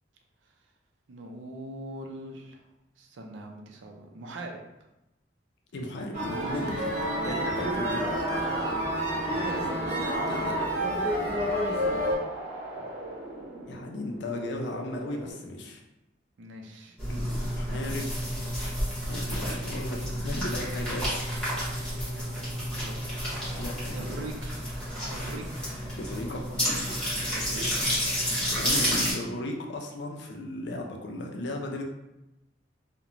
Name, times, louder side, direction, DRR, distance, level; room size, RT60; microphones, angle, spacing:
voice 1, 1.1-2.6 3.0-4.6 9.6-9.7 10.2-10.4 12.7-12.8 16.4-17.0 22.7-23.0 23.9-24.6 25.1-25.6 27.3-27.9, right 1 dB, 85° right, 2 dB, 0.4 m, -41 dB
voice 2, 5.7-6.9 7.2-8.2 10.3-10.6 13.6-15.8 17.1-18.1 19.0-21.3 23.5-24.3 26.0-26.6 28.4-31.8, left 1 dB, 65° left, 2 dB, 0.4 m, -36 dB
sound 1, 6.1-12.1, equal, 40° right, 0.7 m, -29 dB
sound 2, 6.5-15.3, right 1 dB, 70° right, 0.9 m, -42 dB
sound 3, 17.0-29.1, equal, 5° left, 1.1 m, -30 dB
2.9 x 2.1 x 2.5 m, 0.93 s
head